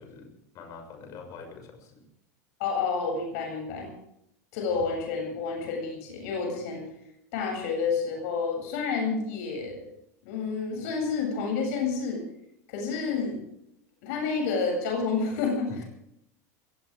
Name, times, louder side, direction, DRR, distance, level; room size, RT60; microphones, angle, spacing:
voice 1, 0.0-2.0 15.7-15.8, left 5 dB, 40° left, 4 dB, 6.6 m, -44 dB
voice 2, 2.6-3.9 4.5-6.9 7.3-9.9 10.2-12.2 12.7-13.4 14.0-15.7, left 5 dB, 65° left, 1 dB, 8.0 m, -29 dB
21.5 x 18.0 x 3.7 m, 0.79 s
supercardioid pair, 140°, 9 cm